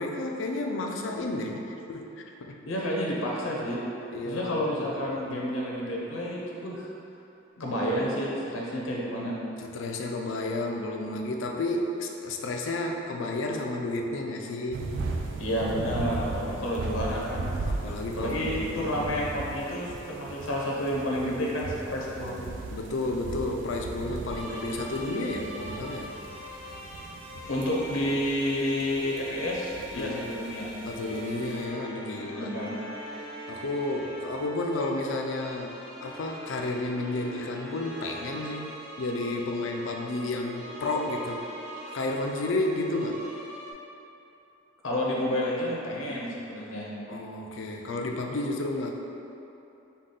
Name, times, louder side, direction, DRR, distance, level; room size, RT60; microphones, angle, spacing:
voice 1, 0.0-1.6 1.9-2.6 4.1-4.9 5.2-5.4 9.6-14.8 17.7-19.3 22.7-26.1 29.9-30.3 30.9-32.6 33.5-41.5 41.9-43.3 47.1-48.9, left 2 dB, 65° left, 2 dB, 0.4 m, -32 dB
voice 2, 2.7-3.8 4.2-6.8 7.6-9.3 15.4-17.5 18.1-22.4 27.5-30.7 32.2-32.8 44.8-46.9, equal, 90° left, -4 dB, 0.8 m, -30 dB
sound 1, 14.7-31.6, right 3 dB, 65° right, 0.4 m, -37 dB
sound 2, 24.3-43.7, right 1 dB, 30° right, 0.8 m, -42 dB
5.3 x 2.3 x 3.7 m, 2.9 s
head